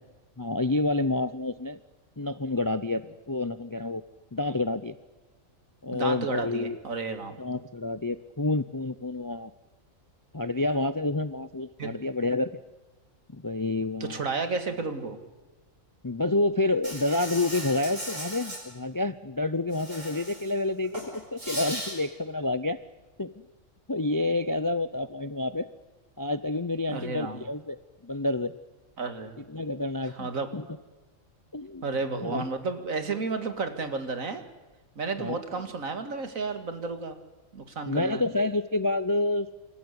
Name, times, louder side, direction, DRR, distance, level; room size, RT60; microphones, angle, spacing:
voice 1, 0.4-1.8 2.2-4.0 4.3-4.9 5.8-6.8 7.4-9.5 10.3-12.5 13.3-14.2 16.0-22.8 23.2-23.3 23.9-25.7 26.2-27.8 28.0-28.5 29.5-30.7 31.5-31.9 32.2-32.4 35.2-35.4 37.9-39.5, left 2 dB, 25° left, 14 dB, 0.4 m, -28 dB
voice 2, 5.9-7.4 11.8-11.9 14.1-15.2 26.9-27.4 29.0-29.4 30.2-30.5 31.8-34.4 35.0-37.2 37.5-38.2, right 4 dB, 85° right, 8 dB, 2.5 m, -32 dB
Insect, 16.8-18.6 19.7-20.5 20.8-21.9, right 1 dB, 70° right, 8.0 m, -37 dB
26.5 x 14.0 x 9.7 m, 1.2 s
omnidirectional pair, 1.4 m